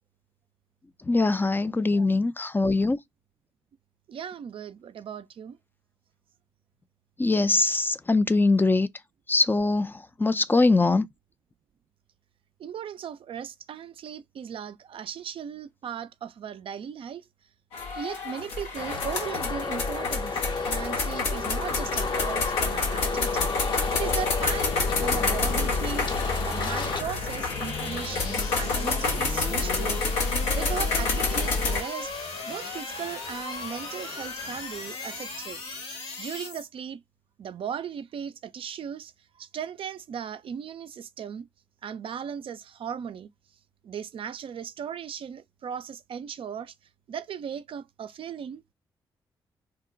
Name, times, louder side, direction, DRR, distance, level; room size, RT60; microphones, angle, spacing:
voice 1, 1.1-3.0 7.2-8.9 9.3-9.9 10.2-11.1, left 3 dB, 20° left, 0.3 m, -22 dB
voice 2, 4.1-5.6 12.6-17.2 17.9-23.5 23.9-26.1 26.4-32.1 32.5-37.0 37.4-39.1 39.4-41.5 41.8-43.3 43.8-46.7 47.1-48.7, right 8 dB, 60° right, 0.4 m, -37 dB
sound 1, 17.7-31.8, left 3 dB, 85° left, 0.6 m, -28 dB
Traffic noise roadway noise, 18.8-27.0, left 4 dB, 50° left, 0.7 m, -32 dB
sound 2, 23.4-36.7, left 3 dB, 70° left, 1.3 m, -37 dB
2.7 x 2.2 x 3.7 m
hypercardioid pair, 40°, 10 cm